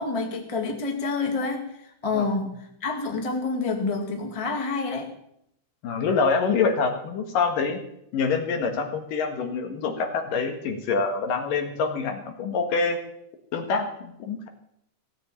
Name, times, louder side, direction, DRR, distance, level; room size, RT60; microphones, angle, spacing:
voice 1, 0.0-1.7 2.0-2.6 2.8-5.1, left 4 dB, 15° left, 3 dB, 1.1 m, -27 dB
voice 2, 5.8-7.8 8.1-13.0 13.5-14.5, left 5 dB, 75° left, 5 dB, 3.3 m, -26 dB
16.5 x 7.7 x 8.6 m, 0.77 s
omnidirectional pair, 3.9 m